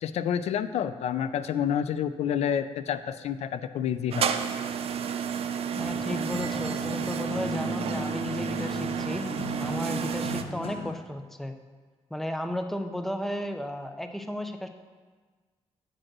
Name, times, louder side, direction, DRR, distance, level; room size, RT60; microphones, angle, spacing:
voice 1, 0.0-4.3, left 9 dB, 80° left, 13 dB, 0.4 m, -29 dB
sound 1, 4.1-10.4, right 8 dB, 65° right, 0.5 m, -31 dB
sound 2, 5.7-11.1, left 3 dB, 60° left, 1.0 m, -37 dB
voice 2, 5.8-9.3 9.6-11.5 12.1-14.7, left 1 dB, ahead, 6 dB, 0.5 m, -34 dB
8.7 x 5.1 x 6.0 m, 1.5 s
wide cardioid pair, 140°, 11 cm